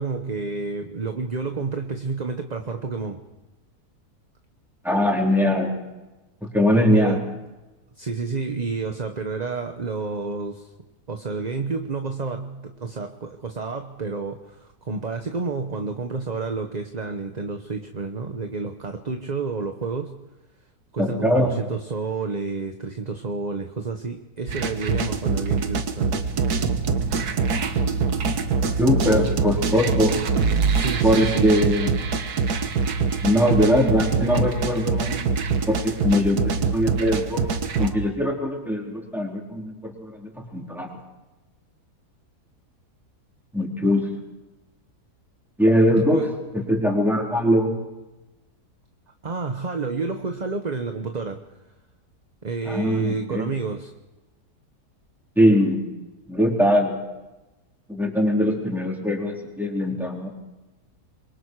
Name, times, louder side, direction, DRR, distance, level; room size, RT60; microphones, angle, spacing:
voice 1, 0.0-3.2 6.7-7.3 8.0-10.7 11.1-20.2 20.9-26.3 29.0-29.3 30.7-31.5 45.9-46.3 49.2-51.4 52.4-53.9, right 4 dB, 30° right, 5 dB, 1.0 m, -30 dB
voice 2, 4.8-5.7 6.5-7.2 21.0-21.6 28.8-30.1 31.0-31.9 33.2-35.2 35.7-37.4 37.8-40.9 43.5-44.0 45.6-46.2 46.5-47.7 52.6-53.5 55.4-55.9 56.3-57.0 57.9-60.3, equal, ahead, -1 dB, 4.1 m, -21 dB
sound 1, 24.5-37.9, right 5 dB, 70° right, 1.8 m, -24 dB
27.5 x 23.0 x 4.8 m, 1.1 s
omnidirectional pair, 1.7 m